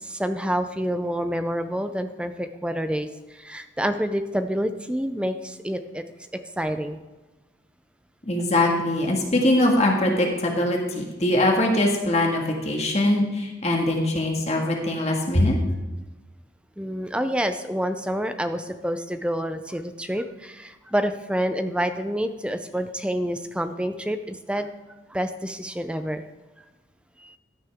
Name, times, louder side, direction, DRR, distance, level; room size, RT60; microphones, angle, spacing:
voice 1, 0.0-6.0 6.6-7.0 16.8-24.7 25.1-26.2 27.2-27.4, equal, 5° right, 9 dB, 0.5 m, -28 dB
voice 2, 8.3-15.6, left 1 dB, 35° left, 0 dB, 1.8 m, -22 dB
15.0 x 9.9 x 3.6 m, 1.2 s
head